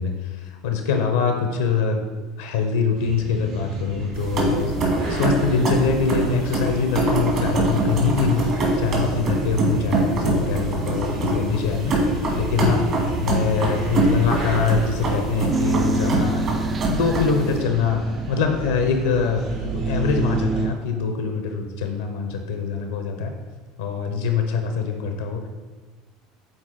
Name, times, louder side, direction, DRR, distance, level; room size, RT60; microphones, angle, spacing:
voice 1, 0.0-2.1 2.4-4.7 5.1-8.5 8.8-12.9 13.2-16.5 16.9-18.0 18.3-23.4 23.8-25.5, left 5 dB, 90° left, 5 dB, 0.6 m, -24 dB
sound 1, 2.9-20.6, right 1 dB, 75° right, 2.0 m, -35 dB
sound 2, 4.1-17.6, right 2 dB, 55° right, 2.0 m, -24 dB
sound 3, 15.5-20.7, right 4 dB, 30° right, 0.3 m, -28 dB
7.9 x 4.0 x 3.9 m, 1.3 s
hypercardioid pair, 85°, 0 cm